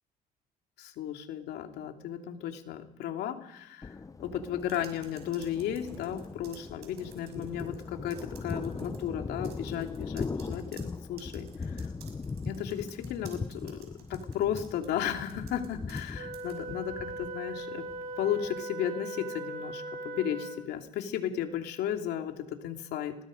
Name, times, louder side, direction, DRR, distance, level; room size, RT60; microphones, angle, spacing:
voice 1, 0.8-11.9 12.4-17.8 18.2-23.2, left 9 dB, 80° left, 4 dB, 2.9 m, -34 dB
Thunder, 3.8-18.6, left 4 dB, 20° left, 0.7 m, -40 dB
sound 1, 4.6-7.8 8.1-9.0 9.4-16.1 16.3-16.6, right 10 dB, 80° right, 6.0 m, -54 dB
Wind instrument woodwind instrument, 16.1-20.8, right 2 dB, 55° right, 6.3 m, -39 dB
25.5 x 21.0 x 5.2 m, 0.80 s
cardioid pair, 110°, 17 cm